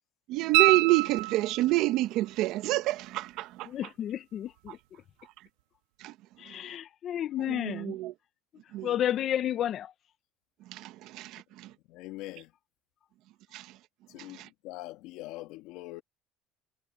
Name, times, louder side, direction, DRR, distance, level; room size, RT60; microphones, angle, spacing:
voice 1, 0.3-3.7 6.0-6.1 7.5-8.1 8.7-8.9 10.7-11.7 13.5-13.8 14.2-14.5, right 17 dB, 70° right, 1.5 m, -28 dB
sound 1, 0.5-1.9 4.7-4.8, right 21 dB, 85° right, 0.7 m, -25 dB
voice 2, 3.6-4.8 6.4-8.0 8.8-9.9, left 11 dB, 50° left, 1.5 m, -31 dB
voice 3, 11.9-12.5 14.1-16.0, left 18 dB, 75° left, 2.6 m, -43 dB
cardioid pair, 115°, 0 cm